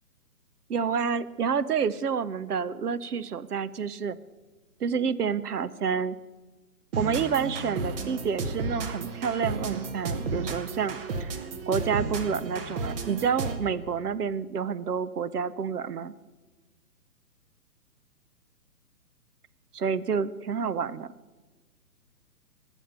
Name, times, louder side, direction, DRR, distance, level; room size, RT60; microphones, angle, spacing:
voice 1, 0.7-4.2 4.8-6.2 7.0-11.4 11.7-16.1 19.7-21.1, right 6 dB, 70° right, 17 dB, 0.9 m, -29 dB
sound 1, 6.9-13.8, right 3 dB, 35° right, 1.2 m, -33 dB
20.0 x 7.2 x 6.8 m, 1.2 s
figure-of-eight pair, 135°, 48 cm